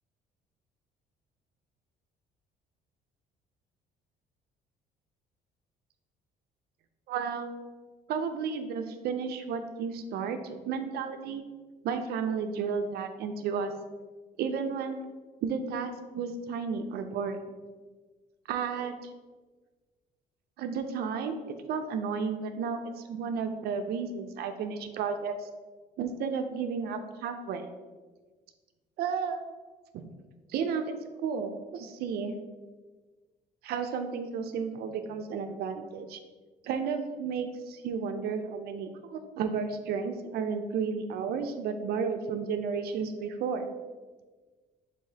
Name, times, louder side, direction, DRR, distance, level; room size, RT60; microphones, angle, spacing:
voice 1, 7.1-7.5 8.1-11.4 11.8-13.7 14.4-15.1 15.4-17.6 18.5-19.1 20.6-21.4 21.7-25.5 26.0-27.7 29.0-29.4 29.9-30.1 30.5-30.9 31.2-32.3 33.6-36.2 36.6-43.7, right 6 dB, 70° right, 7 dB, 0.4 m, -32 dB
4.7 x 4.1 x 2.7 m, 1.4 s
cardioid pair, 110°, 17 cm